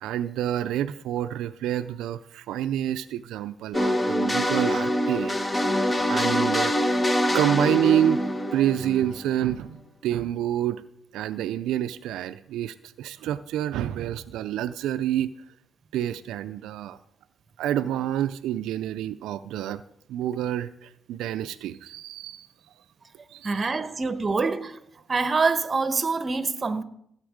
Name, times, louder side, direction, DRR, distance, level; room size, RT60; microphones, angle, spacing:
voice 1, 0.0-5.4 6.1-7.0 7.3-8.2 8.5-10.8 11.1-15.3 15.9-17.0 17.6-19.8 20.1-22.5 23.3-23.9, right 11 dB, 85° right, 0.4 m, -28 dB
sound 1, 3.7-9.5, equal, 15° left, 1.1 m, -25 dB
voice 2, 23.4-24.8 25.1-26.8, right 4 dB, 30° right, 1.1 m, -25 dB
16.5 x 8.0 x 5.1 m
cardioid pair, 90°, 0 cm